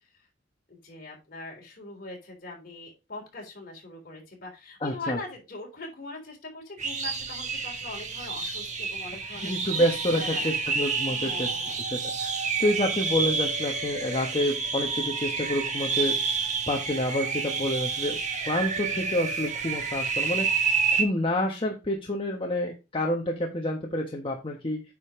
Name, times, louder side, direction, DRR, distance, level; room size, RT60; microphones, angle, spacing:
voice 1, 0.7-9.8 10.1-10.4 11.0-11.8, left 2 dB, 55° left, 0 dB, 3.5 m, -41 dB
voice 2, 4.8-5.2 9.4-11.5 11.9-18.2 18.5-24.8, left 1 dB, 30° left, 0 dB, 1.2 m, -28 dB
sound 1, 6.8-21.0, right 5 dB, 40° right, 1.5 m, -29 dB
9.2 x 5.2 x 3.7 m, 0.27 s
head